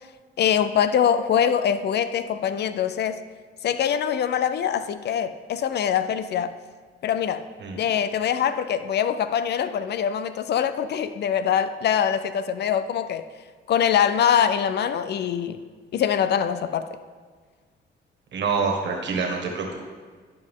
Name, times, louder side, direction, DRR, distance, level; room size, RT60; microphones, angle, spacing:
voice 1, 0.4-3.2 3.6-6.5 7.0-7.4 7.8-13.3 13.7-15.6 15.9-16.9, left 8 dB, 60° left, 12 dB, 0.5 m, -23 dB
voice 2, 18.3-19.8, right 4 dB, 60° right, 1 dB, 1.7 m, -26 dB
11.5 x 5.3 x 3.7 m, 1.5 s
cardioid pair, 90°, 20 cm